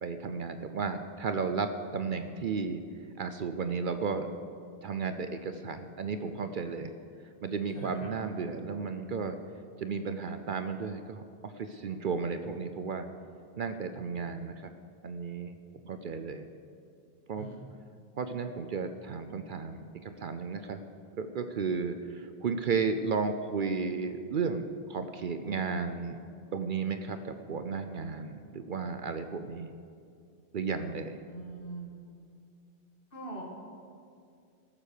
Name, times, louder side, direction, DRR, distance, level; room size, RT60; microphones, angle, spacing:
voice 1, 0.0-2.8 3.2-4.3 4.8-6.9 7.4-9.4 9.8-13.1 13.6-14.7 15.0-15.5 15.8-16.4 17.3-17.6 18.2-20.8 21.2-26.2 26.5-29.7 30.5-31.2, right 5 dB, 55° right, 8 dB, 0.7 m, -34 dB
voice 2, 31.3-31.9 33.1-33.4, right 3 dB, 55° left, -2 dB, 2.5 m, -41 dB
18.0 x 7.5 x 6.6 m, 2.4 s
omnidirectional pair, 1.1 m